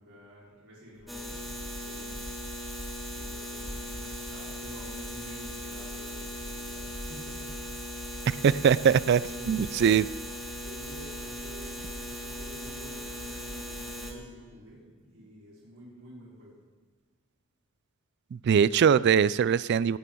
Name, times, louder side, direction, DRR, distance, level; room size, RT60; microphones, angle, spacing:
voice 1, 0.0-2.3 3.1-8.2 9.0-9.8 10.6-16.6, equal, 90° right, -6 dB, 4.5 m, -50 dB
sound 1, 1.1-14.1, left 1 dB, ahead, 2.3 m, -38 dB
voice 2, 8.4-9.2 9.5-10.1 18.3-20.0, right 7 dB, 50° right, 18 dB, 0.3 m, -22 dB
17.5 x 11.5 x 3.8 m, 1.5 s
head